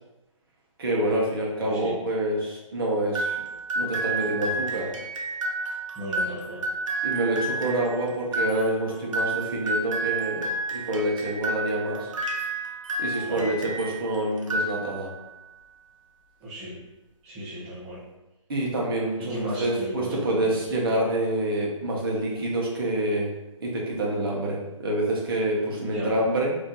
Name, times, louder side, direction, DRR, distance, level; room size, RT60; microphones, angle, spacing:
voice 1, 0.8-3.4 3.8-4.9 7.0-12.1 13.0-15.1 18.5-23.3 23.6-26.6, right 1 dB, 45° right, -3 dB, 0.9 m, -27 dB
voice 2, 1.6-1.9 5.9-6.6 13.3-13.5 16.4-16.8 17.2-18.0 19.2-20.6 25.8-26.1, equal, 10° right, -12 dB, 0.6 m, -35 dB
sound 1, 3.1-14.0 14.4-15.2, right 2 dB, 70° right, 0.8 m, -30 dB
3.2 x 2.7 x 3.7 m, 0.99 s
hypercardioid pair, 175°, 17 cm